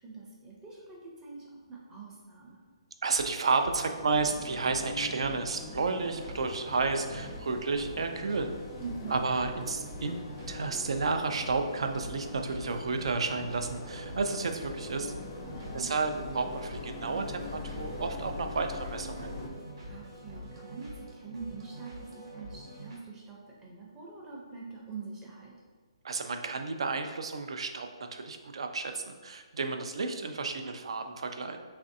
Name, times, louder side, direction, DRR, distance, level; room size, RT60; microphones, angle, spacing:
voice 1, 0.0-2.6 8.8-9.2 15.5-15.9 19.9-25.5, right 4 dB, 15° right, -4 dB, 0.5 m, -44 dB
voice 2, 3.0-8.5 9.1-10.2 10.5-15.1 15.7-19.3 26.0-31.6, right 4 dB, 70° right, 6 dB, 0.3 m, -31 dB
sound 1, 3.2-23.0, right 1 dB, 50° right, 0.9 m, -46 dB
sound 2, 4.0-19.5, left 3 dB, 35° left, 0.4 m, -43 dB
Thunderstorm / Rain, 13.6-20.4, left 2 dB, 80° left, 0.6 m, -50 dB
3.1 x 2.5 x 2.6 m, 1.4 s
hypercardioid pair, 150°, 3 cm